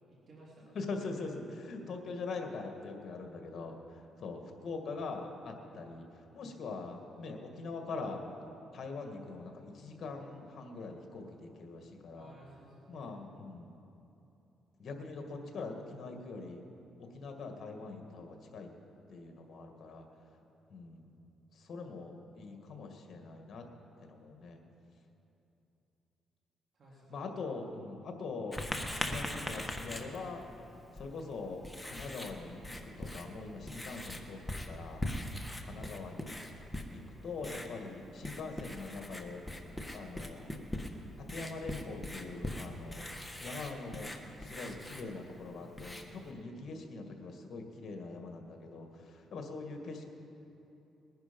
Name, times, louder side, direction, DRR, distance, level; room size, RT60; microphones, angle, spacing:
voice 1, 0.1-0.8 12.1-13.1 26.7-27.3, right 1 dB, 50° right, -5 dB, 3.1 m, -56 dB
voice 2, 0.7-8.2 8.7-12.3 12.9-13.7 14.8-16.6 17.0-18.7 19.1-20.1 20.7-21.1 21.5-23.7 24.0-24.6 27.1-30.4 30.9-35.1 35.6-36.4 36.9-39.4 39.9-40.4 41.2-43.1 43.4-50.0, left 3 dB, 55° left, 3 dB, 2.0 m, -43 dB
Writing, 28.5-46.3, left 1 dB, 5° left, 1.5 m, -42 dB
21.0 x 10.5 x 5.4 m, 2.9 s
cardioid pair, 90°, 0 cm